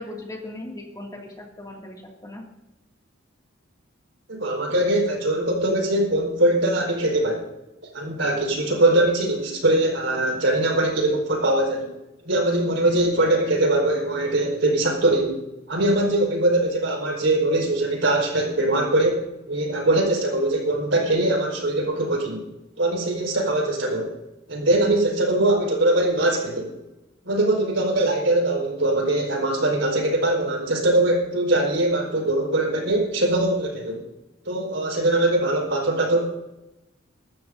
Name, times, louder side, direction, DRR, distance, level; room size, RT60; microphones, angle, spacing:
voice 1, 0.0-2.4, left 1 dB, 20° left, -1 dB, 2.4 m, -38 dB
voice 2, 4.3-7.5 7.9-11.9 12.2-15.4 15.7-19.2 19.5-22.4 22.8-24.1 24.5-26.7 27.2-34.0 34.4-36.2, right 1 dB, 70° right, 0 dB, 4.9 m, -22 dB
23.5 x 12.5 x 2.7 m, 0.97 s
head